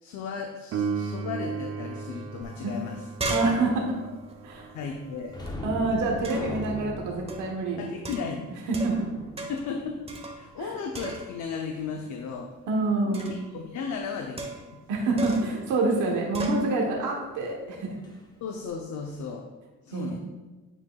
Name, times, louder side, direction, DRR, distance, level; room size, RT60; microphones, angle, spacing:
voice 1, 0.0-3.0 4.7-5.4 7.8-8.4 9.5-10.1 10.4-12.5 13.0-14.8 18.4-19.4 19.8-20.2, left 5 dB, 70° left, 2 dB, 0.7 m, -35 dB
Piano, 0.7-11.1 18.7-18.8, right 5 dB, 50° right, 0.7 m, -38 dB
sound 1, 2.4-2.5 2.8-5.5 6.2-6.6 7.3-7.6 8.0-9.1 9.4-9.7 10.1-10.7 10.9-11.5 13.1-13.5 14.4-14.8 15.2-15.6 16.3-16.6, right 2 dB, 20° right, 1.0 m, -36 dB
voice 2, 3.3-4.0 4.4-4.7 5.6-7.8 8.2-8.3 8.7-9.1 10.6-10.8 12.7-13.4 14.9-17.9 19.9-20.2, right 3 dB, 85° right, -1 dB, 1.2 m, -27 dB
sound 2, 5.3-10.7 18.0-18.2 18.6-18.7, left 2 dB, 15° left, 0.8 m, -39 dB
8.8 x 4.6 x 2.3 m, 1.2 s
cardioid pair, 90°, 30 cm